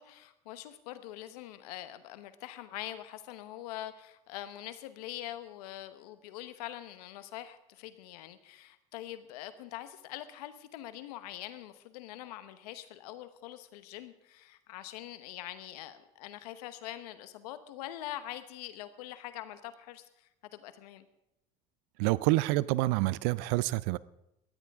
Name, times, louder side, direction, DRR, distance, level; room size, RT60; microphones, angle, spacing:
voice 1, 0.0-21.1, left 13 dB, 90° left, 1.1 m, -44 dB
voice 2, 22.0-24.0, right 19 dB, 80° right, 0.5 m, -27 dB
19.0 x 14.0 x 3.6 m
supercardioid pair, 75°, 20 cm